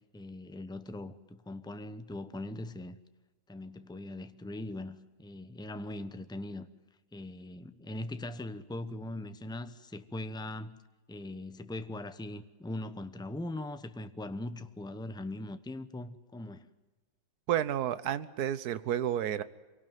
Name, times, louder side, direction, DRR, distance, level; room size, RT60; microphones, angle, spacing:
voice 1, 0.1-3.0 3.5-6.7 7.1-10.8 11.1-16.7, left 1 dB, 5° left, 0.3 m, -40 dB
voice 2, 17.5-19.4, right 10 dB, 60° right, 1.4 m, -31 dB
25.0 x 18.5 x 9.2 m
omnidirectional pair, 2.0 m